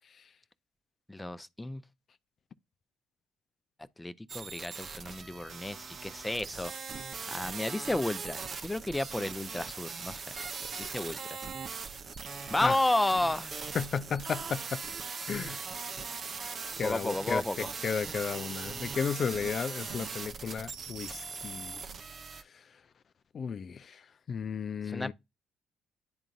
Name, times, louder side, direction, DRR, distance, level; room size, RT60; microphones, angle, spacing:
voice 1, 1.1-1.8 4.0-6.7 7.3-10.2 10.8-11.4 12.5-13.7 16.8-17.7 24.8-25.1, left 1 dB, 15° left, 0.6 m, -32 dB
sound 1, 4.3-22.4, right 5 dB, 50° right, 0.7 m, -40 dB
voice 2, 13.7-14.8 15.3-15.6 16.8-17.4 17.8-21.8 23.3-24.0 24.3-25.1, left 6 dB, 50° left, 0.4 m, -33 dB
10.5 x 3.8 x 2.5 m
hypercardioid pair, 55°, 0 cm